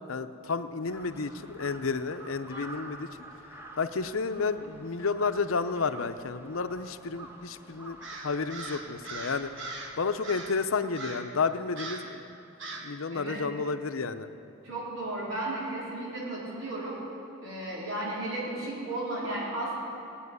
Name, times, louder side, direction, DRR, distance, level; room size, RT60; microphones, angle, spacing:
voice 1, 0.1-3.1 3.8-9.5 10.0-12.2 12.8-14.3, left 4 dB, 85° left, 10 dB, 0.7 m, -31 dB
Crow, 0.9-10.6, right 1 dB, 10° right, 1.3 m, -49 dB
Crow 2, 8.0-9.9 10.2-10.6 10.9-11.3 11.7-12.1 12.6-12.9, right 2 dB, 65° right, 1.7 m, -40 dB
voice 2, 13.1-13.4 14.6-17.0 17.4-19.7, right 2 dB, 80° right, -7 dB, 4.2 m, -34 dB
17.5 x 8.7 x 9.6 m, 2.9 s
head